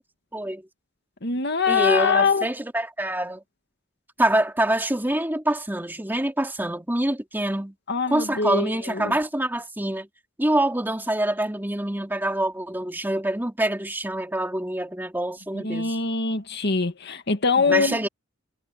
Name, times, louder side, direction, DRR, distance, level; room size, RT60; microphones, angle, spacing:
voice 1, 0.3-0.7 1.7-3.4 4.2-7.7 8.1-10.1 10.4-16.0 17.6-18.1, right 1 dB, 10° right, 2.6 m, -25 dB
voice 2, 1.2-2.5 7.9-9.1 15.5-18.1, left 4 dB, 55° left, 2.1 m, -23 dB
head